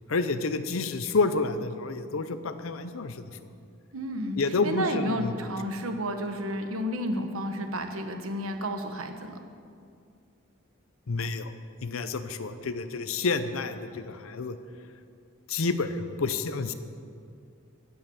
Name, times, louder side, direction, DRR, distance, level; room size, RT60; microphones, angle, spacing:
voice 1, 0.1-3.3 4.4-5.3 11.1-11.5 11.8-14.6 15.5-16.7, left 3 dB, 75° left, 11 dB, 0.7 m, -29 dB
voice 2, 3.9-9.4, equal, 80° right, 6 dB, 1.1 m, -31 dB
15.5 x 5.7 x 7.1 m, 2.3 s
head